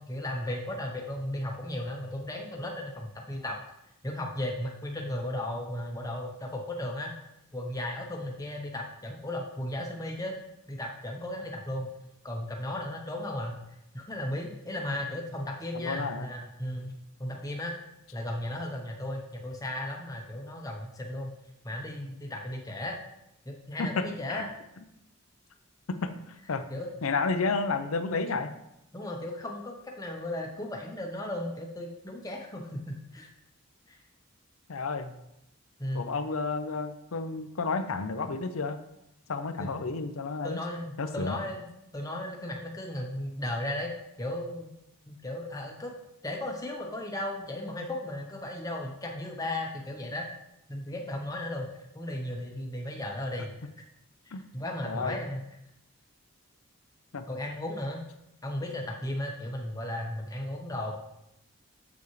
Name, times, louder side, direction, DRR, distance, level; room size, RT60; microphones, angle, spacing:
voice 1, 0.0-3.6 4.0-7.1 7.5-10.3 10.7-11.9 12.2-13.6 13.9-16.9 17.2-17.7 18.1-21.3 21.6-23.0 23.4-24.5 26.7-26.9 28.9-33.3 33.9-34.0 35.8-36.1 39.6-39.8 40.4-41.7 41.9-43.9 44.2-44.7 45.1-45.9 46.2-50.3 50.7-51.7 51.9-53.5 54.2-55.4 57.3-58.0 58.4-60.9, left 1 dB, 15° left, 1 dB, 1.0 m, -35 dB
voice 2, 15.7-16.3 23.8-24.4 25.9-26.7 27.0-28.5 34.7-35.1 35.9-38.8 39.3-40.6 41.0-41.4 54.3-54.5 54.8-55.2 57.1-57.3, left 4 dB, 85° left, 9 dB, 0.6 m, -31 dB
7.0 x 7.0 x 3.2 m, 0.82 s
head